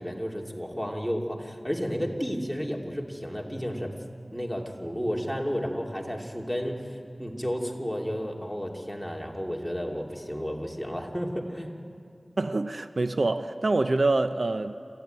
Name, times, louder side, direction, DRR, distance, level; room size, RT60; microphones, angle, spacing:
voice 1, 0.0-3.9 4.3-11.7, equal, ahead, 2.8 m, -32 dB
voice 2, 12.4-15.0, right 2 dB, 80° right, 0.7 m, -26 dB
26.5 x 15.0 x 9.3 m
wide cardioid pair, 50°, 0 cm